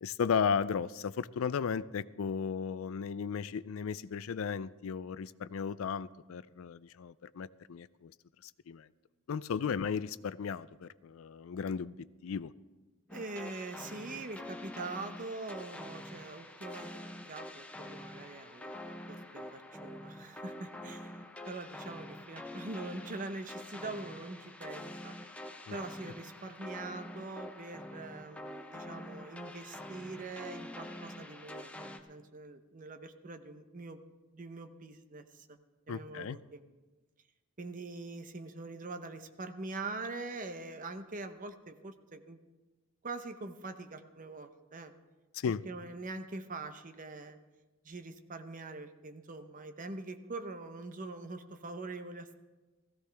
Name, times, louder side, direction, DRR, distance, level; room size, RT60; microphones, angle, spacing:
voice 1, 0.0-8.1 8.4-8.9 9.3-12.0 12.2-12.5 25.7-25.8 35.9-36.4 45.3-45.6, left 6 dB, 70° left, 16 dB, 0.4 m, -35 dB
sound 1, 13.1-32.0, left 1 dB, 5° left, 0.6 m, -46 dB
voice 2, 13.1-16.9 17.3-21.2 21.5-25.1 25.7-35.6 35.9-36.6 37.6-42.4 43.0-44.9 45.7-47.4 47.8-52.3, right 3 dB, 40° right, 8 dB, 0.8 m, -43 dB
16.0 x 14.5 x 3.4 m, 1.2 s
head